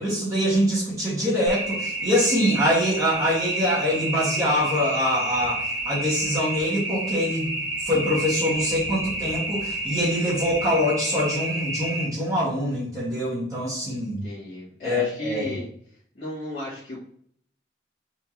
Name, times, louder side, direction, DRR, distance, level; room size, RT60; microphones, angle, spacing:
voice 1, 0.0-14.2 14.8-15.5, equal, 20° right, -10 dB, 2.0 m, -24 dB
sound 1, 1.5-12.1, right 2 dB, 65° right, 1.6 m, -30 dB
voice 2, 14.2-15.7 16.1-17.0, left 1 dB, 50° left, -13 dB, 1.9 m, -34 dB
4.6 x 3.8 x 3.0 m, 0.63 s
head